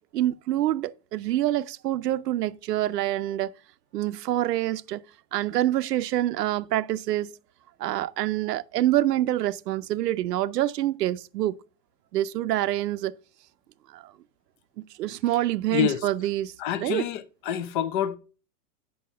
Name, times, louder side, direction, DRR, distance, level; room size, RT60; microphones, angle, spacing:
voice 1, 0.1-3.5 3.9-5.0 5.3-7.3 7.8-11.6 12.1-13.1 13.9-14.1 15.0-17.1, right 14 dB, 80° right, 0.7 m, -26 dB
voice 2, 16.6-18.2, left 10 dB, 35° left, 0.7 m, -27 dB
7.9 x 5.9 x 5.4 m
supercardioid pair, 155°, 47 cm